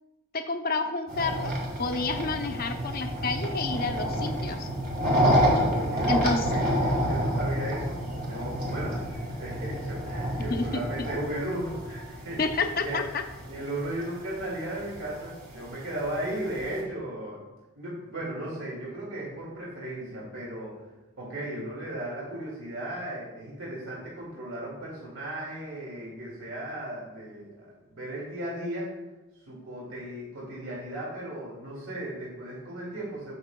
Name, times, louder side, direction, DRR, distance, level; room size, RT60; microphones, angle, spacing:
voice 1, 0.3-1.5 1.8-4.7 6.1-6.5 10.5-11.1 12.4-13.2, left 3 dB, 45° left, 6 dB, 0.7 m, -29 dB
sound 1, 1.1-16.8, equal, 45° right, 2.0 m, -29 dB
voice 2, 5.3-13.0 13.4-17.4 17.7-20.8 21.2-28.9 29.5-33.4, right 1 dB, 70° right, -5 dB, 2.3 m, -36 dB
14.5 x 5.6 x 2.3 m, 1.1 s
head